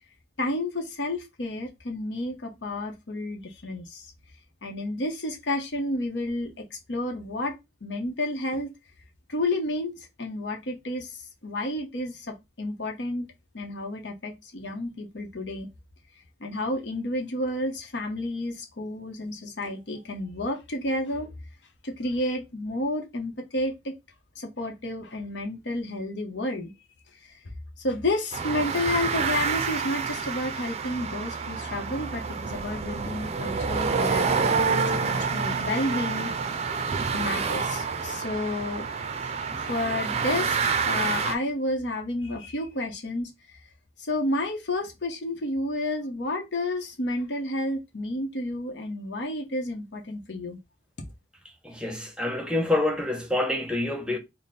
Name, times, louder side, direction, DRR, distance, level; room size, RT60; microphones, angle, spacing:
voice 1, 0.4-4.1 4.6-7.5 7.8-8.7 9.3-15.7 16.4-21.3 21.8-23.9 24.4-26.7 27.3-27.4 27.8-36.3 37.1-38.9 39.5-40.6 40.8-43.3 44.0-50.6, left 1 dB, 90° left, 0.8 m, -31 dB
sound 1, 28.3-41.3, right 5 dB, 35° right, 0.4 m, -28 dB
voice 2, 51.6-54.2, left 2 dB, 5° right, 0.7 m, -27 dB
3.3 x 2.0 x 4.1 m
head